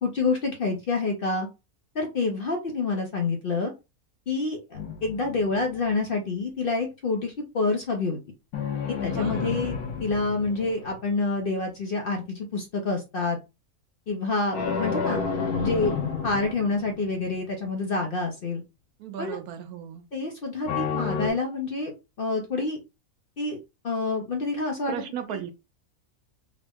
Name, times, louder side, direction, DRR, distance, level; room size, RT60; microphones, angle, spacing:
voice 1, 0.0-1.5 1.9-3.7 4.3-8.2 8.9-13.4 14.1-15.2 15.6-15.9 16.2-18.6 19.2-19.4 20.1-22.8 23.4-23.6 23.8-24.9 25.3-25.4, left 3 dB, 55° left, 0.6 m, -27 dB
sound 1, 4.7-5.9 8.5-11.2 14.5-17.3 20.7-21.3, left 5 dB, 80° left, 1.3 m, -30 dB
voice 2, 9.1-9.6 19.0-20.0 24.9-25.5, right 10 dB, 90° right, 1.2 m, -36 dB
3.7 x 2.0 x 3.4 m
omnidirectional pair, 1.5 m